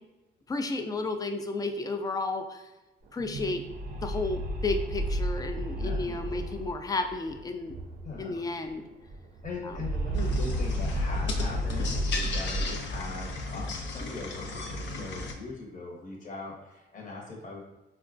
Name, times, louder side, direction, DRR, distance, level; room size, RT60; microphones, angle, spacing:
voice 1, 0.5-2.6 3.1-3.6 4.0-7.8 8.2-8.8 9.6-9.8, left 3 dB, 20° left, 6 dB, 0.3 m, -32 dB
sound 1, 3.1-8.4 8.6-8.7 9.0-13.3, equal, 45° right, 0.5 m, -32 dB
voice 2, 5.8-6.6 8.0-8.5 9.4-17.6, left 3 dB, 40° left, -3 dB, 1.0 m, -40 dB
sound 2, 10.1-15.3, left 3 dB, 65° left, 0.6 m, -35 dB
4.1 x 2.2 x 2.5 m, 1.1 s
cardioid pair, 90°, 20 cm